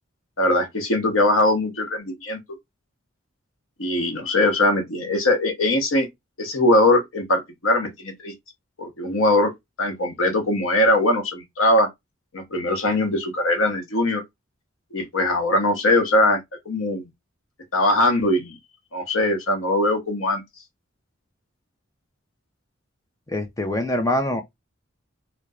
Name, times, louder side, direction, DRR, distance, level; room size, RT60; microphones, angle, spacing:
voice 1, 0.4-2.4 3.8-6.1 6.4-8.3 8.8-9.5 9.8-11.9 12.3-14.2 14.9-16.4 16.6-17.1 17.7-18.6 18.9-20.4, left 1 dB, 80° left, 1.0 m, -21 dB
voice 2, 23.3-24.4, left 1 dB, 15° left, 0.6 m, -24 dB
4.4 x 2.2 x 2.4 m
head